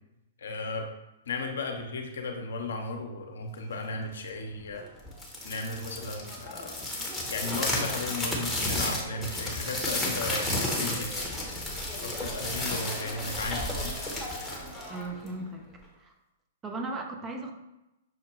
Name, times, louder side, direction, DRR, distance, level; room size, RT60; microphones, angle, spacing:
voice 1, 0.4-0.9 1.3-4.9 5.4-6.8 7.3-11.3 12.0-14.0, left 3 dB, 70° left, 3 dB, 0.7 m, -35 dB
sound 1, 5.1-15.4, left 1 dB, 5° left, 0.9 m, -32 dB
voice 2, 14.9-16.1 16.6-17.5, right 2 dB, 20° right, 3 dB, 0.6 m, -37 dB
6.1 x 2.1 x 3.2 m, 0.95 s
figure-of-eight pair, 110°, 0 cm